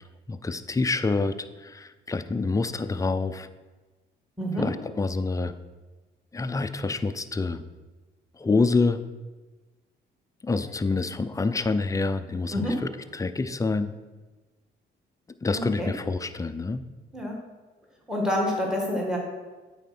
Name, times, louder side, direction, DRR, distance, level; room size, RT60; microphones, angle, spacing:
voice 1, 0.3-3.5 4.6-5.5 6.3-7.7 8.4-9.0 10.4-13.9 15.4-16.8, left 3 dB, 15° left, 10 dB, 0.5 m, -27 dB
voice 2, 4.4-4.7 12.5-12.7 15.5-15.9 17.1-17.4 18.1-19.2, equal, 5° right, -1 dB, 1.9 m, -27 dB
8.8 x 4.3 x 6.0 m, 1.2 s
cardioid pair, 90°, 20 cm